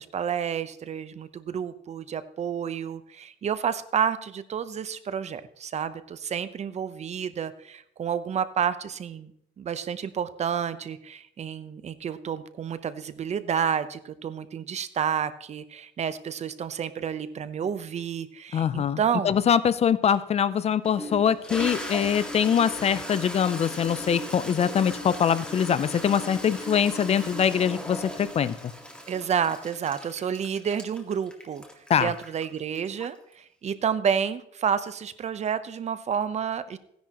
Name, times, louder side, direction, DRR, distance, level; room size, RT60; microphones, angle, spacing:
voice 1, 0.0-9.3 9.6-19.3 29.1-31.6 32.0-36.8, right 8 dB, 40° right, 13 dB, 0.8 m, -30 dB
voice 2, 18.5-19.0 19.2-28.6 31.9-32.1, left 8 dB, 40° left, 16 dB, 0.5 m, -23 dB
Toilet flush, 20.1-20.2 20.8-33.3, equal, 5° left, 2.1 m, -37 dB
16.0 x 10.5 x 3.0 m, 0.72 s
cardioid pair, 110°, 17 cm